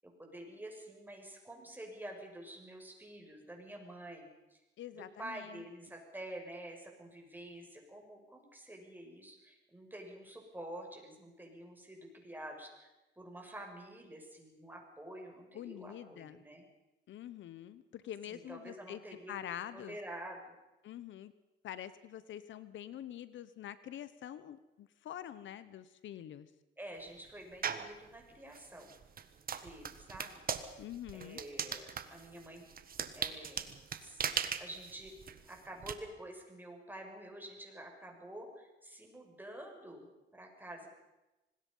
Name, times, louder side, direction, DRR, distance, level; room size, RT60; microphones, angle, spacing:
voice 1, 0.0-4.6 4.9-16.6 18.3-19.4 19.7-20.5 26.8-28.9 29.5-30.7 31.1-32.7 33.1-33.7 34.0-34.3 34.6-35.1 35.5-40.9, right 1 dB, 10° right, 1 dB, 6.6 m, -48 dB
voice 2, 4.8-5.6 15.5-16.4 17.1-19.0 19.3-20.0 20.8-21.3 21.6-26.5 30.8-31.4, left 11 dB, 70° left, 14 dB, 1.0 m, -46 dB
sound 1, 27.6-27.9 28.5-35.9, right 7 dB, 50° right, 1.7 m, -39 dB
25.5 x 20.0 x 5.6 m, 1.0 s
cardioid pair, 90°, 20 cm